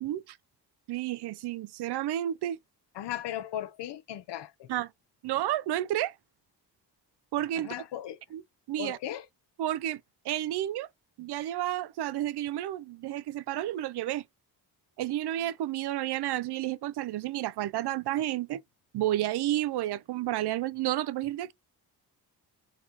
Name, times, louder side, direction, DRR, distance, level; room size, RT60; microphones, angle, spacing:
voice 1, 0.0-0.4 0.9-2.6 4.7-4.9 5.2-6.1 7.3-7.7 8.3-8.4 8.7-9.0 9.6-10.9 11.2-14.2 15.0-18.6 18.9-21.5, right 13 dB, 70° right, 0.5 m, -31 dB
voice 2, 2.9-4.7 7.6-8.2 8.8-9.3, left 12 dB, 80° left, 0.8 m, -37 dB
4.1 x 2.8 x 3.8 m
cardioid pair, 115°, 41 cm